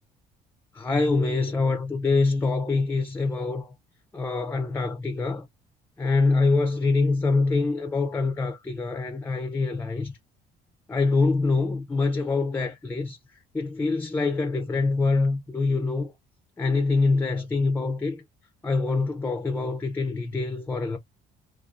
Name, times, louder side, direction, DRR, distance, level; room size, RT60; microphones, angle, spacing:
voice 1, 0.7-3.7 4.1-5.5 6.0-10.1 10.9-13.2 13.5-16.1 16.6-18.2 18.6-21.0, left 3 dB, 10° left, 0.4 m, -25 dB
2.5 x 2.3 x 2.4 m
cardioid pair, 110°, 17 cm